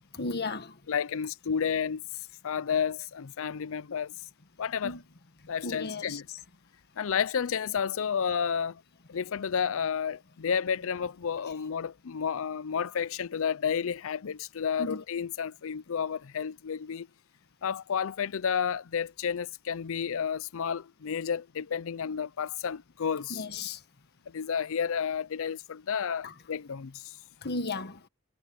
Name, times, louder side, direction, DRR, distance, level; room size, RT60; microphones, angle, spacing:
voice 1, 0.1-0.8 4.8-5.0 5.6-6.2 14.8-15.0 23.3-23.8 26.2-26.3 27.4-28.0, left 3 dB, 50° left, 1.6 m, -34 dB
voice 2, 0.9-2.0 2.4-4.1 4.6-5.0 5.5-6.4 7.0-8.8 9.1-17.1 17.6-23.4 24.3-27.2, left 7 dB, 65° left, 0.5 m, -31 dB
head